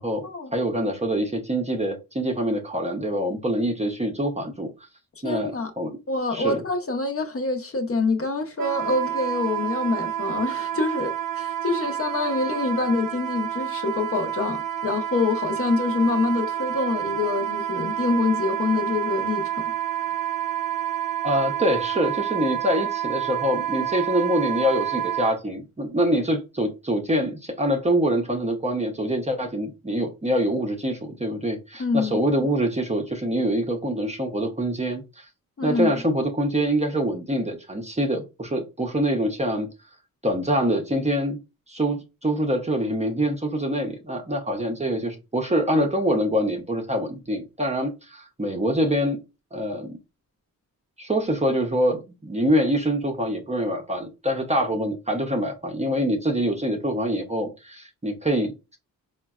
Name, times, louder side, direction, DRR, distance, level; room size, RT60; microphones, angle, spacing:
voice 1, 0.5-4.7 5.2-6.0 6.3-6.6 21.2-35.3 35.6-39.7 40.2-41.4 41.7-49.2 49.5-50.0 51.0-58.8, equal, 20° right, 0.6 m, -25 dB
voice 2, 5.2-5.7 6.1-19.6 31.8-32.2 35.6-35.9, left 3 dB, 40° left, 0.6 m, -26 dB
Wind instrument woodwind instrument, 8.6-25.4, right 11 dB, 70° right, 0.6 m, -29 dB
3.8 x 2.1 x 2.3 m
cardioid pair, 70°, 36 cm